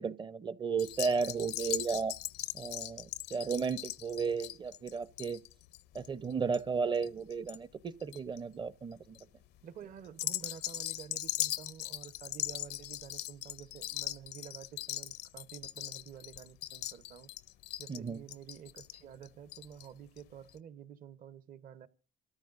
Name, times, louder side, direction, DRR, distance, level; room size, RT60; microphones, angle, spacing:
voice 1, 0.0-2.1 2.5-5.4 5.9-9.2 17.9-18.2, right 5 dB, 25° right, 0.6 m, -34 dB
sound 1, 0.8-7.6 7.9-8.4 8.9-9.2 10.1-19.9 20.2-20.3 20.5-20.6, left 14 dB, 75° left, 0.6 m, -39 dB
voice 2, 9.6-17.3 17.8-21.9, right 9 dB, 55° right, 0.9 m, -50 dB
28.0 x 13.5 x 2.5 m
cardioid pair, 110°, 17 cm